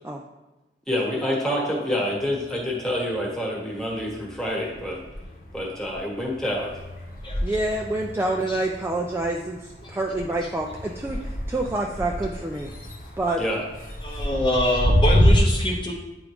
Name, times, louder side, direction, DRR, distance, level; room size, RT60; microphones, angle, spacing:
voice 1, 0.9-5.0 5.5-6.7 13.4-13.6, equal, 5° left, -3 dB, 1.3 m, -27 dB
sound 1, 2.1-3.3 3.7-15.4, equal, 55° left, 1.1 m, -28 dB
voice 2, 7.4-12.8 13.2-13.4, right 2 dB, 15° right, 0 dB, 0.3 m, -27 dB
voice 3, 14.0-15.9, left 1 dB, 25° left, -1 dB, 0.7 m, -25 dB
9.1 x 3.5 x 3.5 m, 1.1 s
head